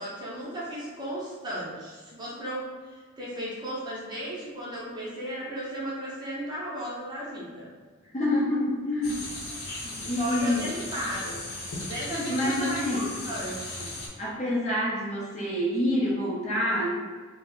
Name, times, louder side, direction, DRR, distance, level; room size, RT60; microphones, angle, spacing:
voice 1, 0.0-7.7 10.2-11.4 11.8-13.9, right 1 dB, 20° right, -7 dB, 0.6 m, -35 dB
voice 2, 8.1-9.3 9.8-10.7 12.1-13.1 14.2-16.9, left 1 dB, 30° left, -5 dB, 0.5 m, -27 dB
sound 1, 9.0-14.1, left 2 dB, 80° left, 0.7 m, -37 dB
2.4 x 2.0 x 3.7 m, 1.4 s
head